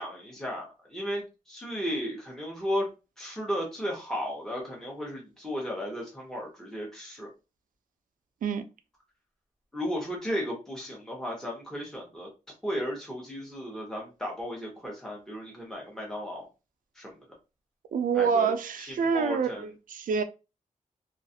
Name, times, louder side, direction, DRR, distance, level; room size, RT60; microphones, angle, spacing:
voice 1, 0.0-2.9 3.2-7.3 9.7-12.3 12.6-16.4 16.9-17.1 18.1-18.5 18.8-19.6, equal, 5° left, 0.8 m, -34 dB
voice 2, 17.9-20.2, right 6 dB, 85° right, 0.4 m, -27 dB
2.4 x 2.3 x 2.6 m
wide cardioid pair, 120°, 14 cm